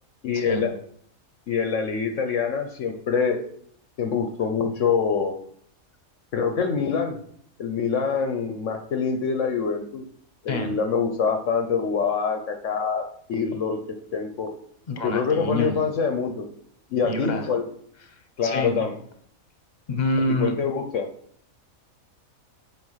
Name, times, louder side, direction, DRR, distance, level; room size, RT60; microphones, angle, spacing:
voice 1, 0.2-0.8 1.5-3.4 4.0-5.3 6.3-7.2 7.6-10.0 10.4-14.5 15.0-16.5 16.9-17.7 18.4-19.0 20.4-21.1, left 5 dB, 65° left, 5 dB, 1.1 m, -25 dB
voice 2, 14.9-15.8 17.0-17.5 18.4-18.8 19.9-20.5, left 1 dB, 35° left, 6 dB, 1.2 m, -26 dB
7.8 x 4.8 x 5.6 m, 0.64 s
omnidirectional pair, 1.5 m